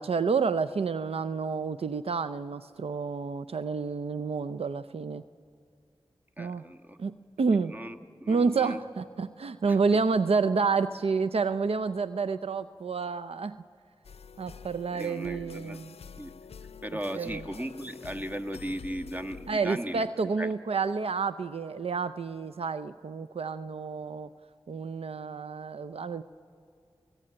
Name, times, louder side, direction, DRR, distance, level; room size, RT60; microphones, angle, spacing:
voice 1, 0.0-5.2 6.4-6.6 7.0-7.7 8.3-13.6 14.4-15.9 17.1-17.4 19.5-24.3 24.7-26.2, right 4 dB, 75° right, 12 dB, 0.6 m, -29 dB
voice 2, 6.4-7.0 7.7-8.8 14.9-15.8 16.2-16.3 16.8-20.1 20.4-20.5, equal, 15° right, 7 dB, 1.5 m, -37 dB
sound 1, 14.0-19.6, left 6 dB, 80° left, 0.5 m, -47 dB
29.5 x 18.0 x 8.8 m, 2.2 s
cardioid pair, 40°, 10 cm